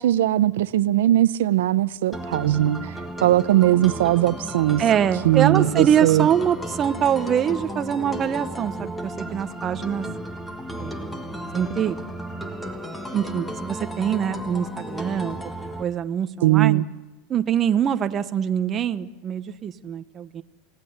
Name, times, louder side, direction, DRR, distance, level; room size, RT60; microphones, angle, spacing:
voice 1, 0.0-2.9 3.2-4.8 5.2-6.3 16.4-16.9, right 14 dB, 90° right, 0.8 m, -19 dB
sound 1, 2.1-15.8, equal, 5° left, 1.5 m, -34 dB
voice 2, 4.8-10.1 10.8-11.2 11.5-12.0 13.1-16.8 17.3-20.4, right 9 dB, 20° right, 0.9 m, -24 dB
29.5 x 18.0 x 8.1 m
supercardioid pair, 165°, 0 cm